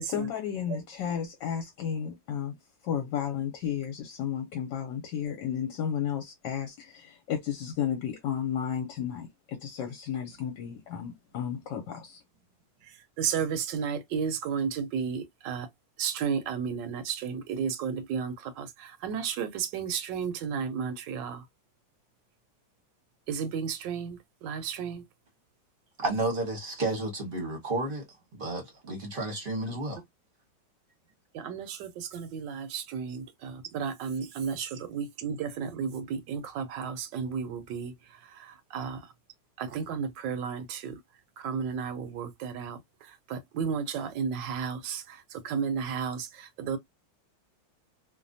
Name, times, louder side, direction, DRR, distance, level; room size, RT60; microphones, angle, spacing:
voice 1, 0.0-2.6 2.8-12.2, left 8 dB, 75° left, 1.3 m, -33 dB
voice 2, 13.2-15.7 16.0-21.4 23.3-25.0 31.3-37.9 38.3-39.0 39.6-41.0 41.4-42.8 43.3-46.8, right 6 dB, 75° right, 1.2 m, -33 dB
voice 3, 26.0-28.0 28.4-30.0, right 2 dB, 40° right, 0.8 m, -31 dB
3.2 x 2.1 x 2.5 m
omnidirectional pair, 2.1 m